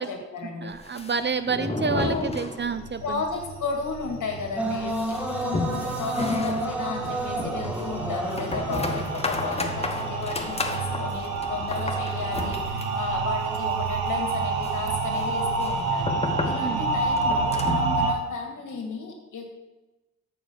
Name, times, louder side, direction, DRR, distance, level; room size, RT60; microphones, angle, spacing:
voice 1, 0.0-0.8 1.7-2.3 3.0-19.5, left 4 dB, 60° left, 2 dB, 2.3 m, -34 dB
voice 2, 0.6-3.2 8.7-8.8 16.6-16.8, right 5 dB, 30° right, 11 dB, 0.7 m, -29 dB
sound 1, 0.7-3.1 3.3-3.4 3.8-3.9 4.3-17.9, left 3 dB, 15° left, 1.2 m, -33 dB
sound 2, 2.6-18.1, right 4 dB, 80° right, 1.1 m, -29 dB
sound 3, 4.6-10.7, right 1 dB, 5° right, 1.7 m, -31 dB
6.8 x 6.2 x 6.9 m, 1.1 s
hypercardioid pair, 40°, 35 cm